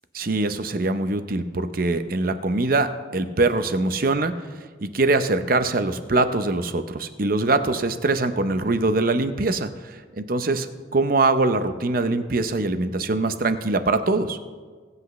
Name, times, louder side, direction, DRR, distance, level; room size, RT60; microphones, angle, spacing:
voice 1, 0.1-4.4 4.8-14.4, right 2 dB, 50° right, 10 dB, 0.7 m, -23 dB
21.0 x 8.1 x 3.2 m, 1.5 s
head